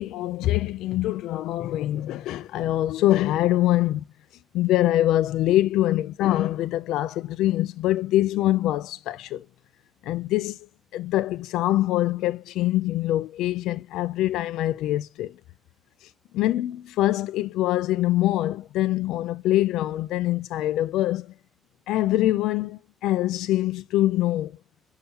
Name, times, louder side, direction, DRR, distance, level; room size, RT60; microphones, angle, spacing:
voice 1, 0.0-4.1 4.5-9.5 10.0-10.6 10.9-15.4 16.0-21.3 21.9-24.6, left 15 dB, 90° left, 0.4 m, -24 dB
6.9 x 5.7 x 2.8 m
cardioid pair, 90°, 0 cm